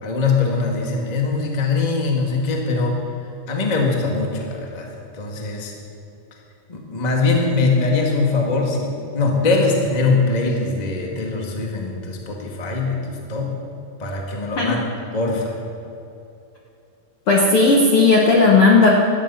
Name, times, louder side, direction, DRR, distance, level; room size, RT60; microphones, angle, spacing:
voice 1, 0.0-3.0 3.5-5.7 6.7-13.5 14.0-14.8 15.1-15.5, left 3 dB, 20° left, 0 dB, 1.2 m, -22 dB
voice 2, 17.3-18.9, left 3 dB, 55° left, -2 dB, 1.6 m, -14 dB
17.5 x 12.5 x 5.6 m, 2.8 s
omnidirectional pair, 4.0 m